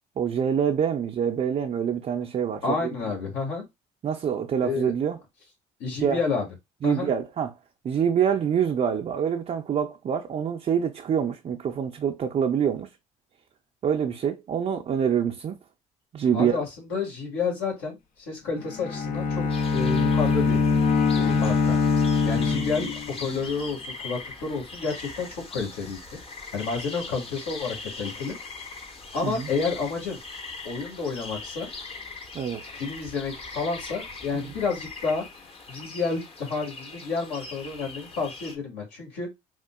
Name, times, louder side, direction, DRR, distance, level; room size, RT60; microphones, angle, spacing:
voice 1, 0.2-2.9 4.0-5.2 6.0-6.2 6.8-7.5 7.8-12.9 13.8-15.6 16.1-16.6 29.2-29.5 32.3-32.6 34.3-34.5, right 8 dB, 40° right, 0.5 m, -26 dB
voice 2, 2.6-3.6 4.6-4.9 5.8-6.5 6.8-7.1 16.3-18.0 18.3-19.4 19.7-20.6 21.1-21.7 22.2-22.9 23.2-26.0 26.5-28.3 29.1-30.2 30.6-31.7 32.7-35.2 35.7-39.3, left 4 dB, 75° left, 1.6 m, -30 dB
Bowed string instrument, 18.6-23.4, left 4 dB, 55° left, 0.6 m, -23 dB
sound 1, 19.5-38.6, left 3 dB, 35° left, 0.9 m, -41 dB
3.6 x 2.4 x 2.2 m
hypercardioid pair, 60°, 18 cm